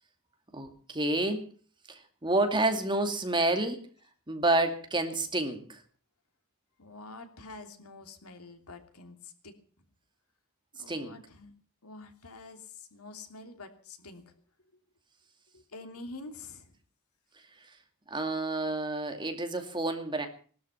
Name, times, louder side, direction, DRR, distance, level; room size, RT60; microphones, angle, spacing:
voice 1, 0.5-1.5 1.9-3.8 4.3-5.8 10.9-11.2 18.1-20.3, right 2 dB, 20° right, 6 dB, 2.4 m, -29 dB
voice 2, 6.8-9.5 10.8-11.5 11.8-14.2 15.5-16.7, left 3 dB, 90° left, 6 dB, 2.9 m, -47 dB
20.5 x 12.5 x 5.7 m, 0.44 s
head